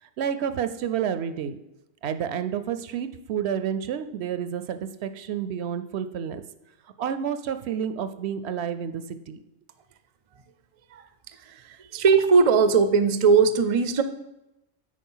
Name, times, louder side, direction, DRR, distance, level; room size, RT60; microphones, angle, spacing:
voice 1, 0.2-1.6 2.0-6.4 7.0-9.4, right 8 dB, 70° right, 11 dB, 0.8 m, -30 dB
voice 2, 11.4-14.0, right 5 dB, 45° right, 11 dB, 0.5 m, -19 dB
8.5 x 5.1 x 5.5 m, 0.92 s
omnidirectional pair, 1.2 m